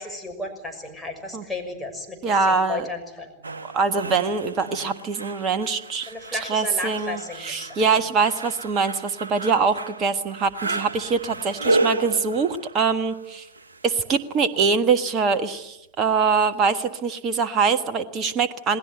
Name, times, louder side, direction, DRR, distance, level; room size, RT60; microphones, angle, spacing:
voice 1, 0.0-3.3 6.1-7.9, left 2 dB, 5° left, 2 dB, 6.3 m, -34 dB
voice 2, 2.2-2.8 3.7-6.1 6.5-13.5 13.8-18.8, right 5 dB, 30° right, 9 dB, 1.5 m, -23 dB
sound 1, 3.4-14.2 16.5-16.6, right 2 dB, 75° right, 1.0 m, -31 dB
28.5 x 19.5 x 9.2 m, 0.91 s
figure-of-eight pair, 90°, 0 cm